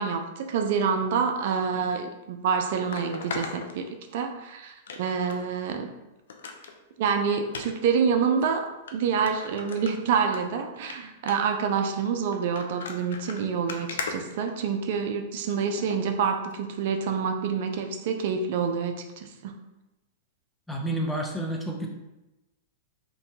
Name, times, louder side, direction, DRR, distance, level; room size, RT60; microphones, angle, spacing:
voice 1, 0.0-3.9 4.1-5.9 7.0-8.7 8.9-19.5, right 6 dB, 60° right, 5 dB, 0.3 m, -27 dB
sound 1, 1.8-1.9 2.9-4.4 4.9-5.4 5.8-5.9 6.3-6.7 7.5-7.7 8.4-8.5 8.9-9.0 9.3-10.4 10.7-11.0 11.3-11.6 12.3-15.0 15.8-16.0 16.5-16.6, left 4 dB, 75° left, 0.3 m, -38 dB
voice 2, 20.7-21.9, right 1 dB, 5° left, -1 dB, 0.5 m, -29 dB
2.6 x 2.2 x 2.8 m, 1.0 s
hypercardioid pair, 115°, 0 cm